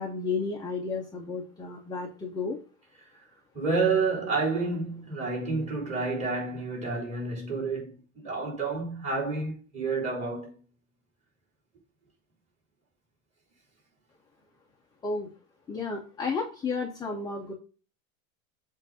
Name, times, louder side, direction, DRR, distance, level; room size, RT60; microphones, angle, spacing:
voice 1, 0.0-2.6 15.0-15.3 15.7-17.5, left 4 dB, 10° left, 0.8 m, -32 dB
voice 2, 3.5-10.5, right 4 dB, 15° right, 3.9 m, -29 dB
7.8 x 2.7 x 5.4 m
supercardioid pair, 150°, 40 cm